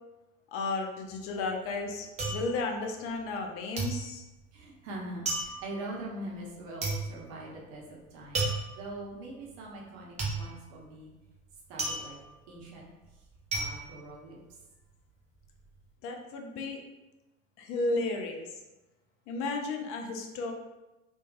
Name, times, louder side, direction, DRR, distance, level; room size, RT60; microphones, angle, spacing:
voice 1, 0.5-4.2 16.0-16.8 17.6-18.4 19.3-20.5, left 3 dB, 35° left, 3 dB, 0.5 m, -33 dB
sound 1, 1.1-3.5 3.8-14.9 15.2-15.8, right 3 dB, 15° right, 0.7 m, -35 dB
voice 2, 4.5-8.5 8.7-11.1 11.7-12.2 12.5-12.9 13.5-14.4, right 1 dB, 45° right, -2 dB, 1.0 m, -42 dB
3.8 x 2.3 x 2.4 m, 1.0 s
figure-of-eight pair, 80°, 41 cm